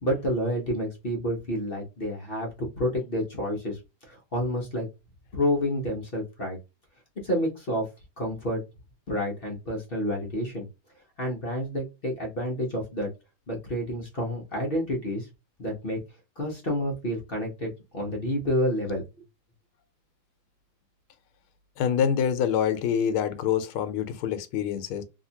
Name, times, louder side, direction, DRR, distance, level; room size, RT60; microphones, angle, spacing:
voice 1, 0.0-4.9 5.3-6.6 7.2-7.8 8.2-8.6 9.1-10.7 11.2-13.1 13.5-15.3 15.6-16.0 16.4-19.0, equal, 50° left, 0.7 m, -29 dB
voice 2, 21.8-25.0, left 8 dB, 90° left, 1.5 m, -26 dB
3.2 x 2.8 x 2.7 m
omnidirectional pair, 2.2 m